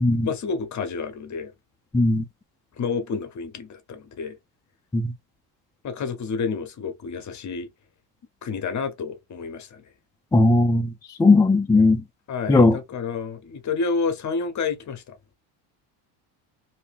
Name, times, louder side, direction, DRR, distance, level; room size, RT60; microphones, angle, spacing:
voice 1, 0.2-1.5 2.8-4.4 5.8-7.7 8.4-9.8 12.3-15.2, left 5 dB, 35° left, 0.9 m, -29 dB
voice 2, 1.9-2.2 4.9-5.1 10.3-10.9 11.2-12.0 12.5-12.8, left 2 dB, 10° left, 0.3 m, -17 dB
2.8 x 2.7 x 3.5 m
supercardioid pair, 90°, 49 cm